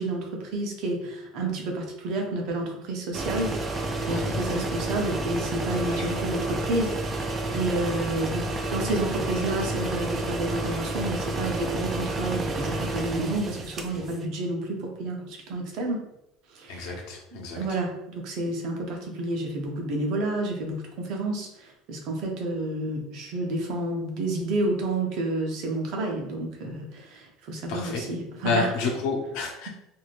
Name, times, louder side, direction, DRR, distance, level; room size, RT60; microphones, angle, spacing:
voice 1, 0.0-16.0 16.5-17.1 17.3-28.7, right 2 dB, 60° right, 1 dB, 0.7 m, -30 dB
sound 1, 3.1-14.2, right 2 dB, 30° right, 0.4 m, -30 dB
voice 2, 4.1-4.6 5.8-6.2 16.7-17.6 27.7-28.0 28.4-29.7, left 4 dB, 70° left, 0 dB, 0.8 m, -30 dB
3.1 x 2.7 x 2.5 m, 0.85 s
supercardioid pair, 115°, 0 cm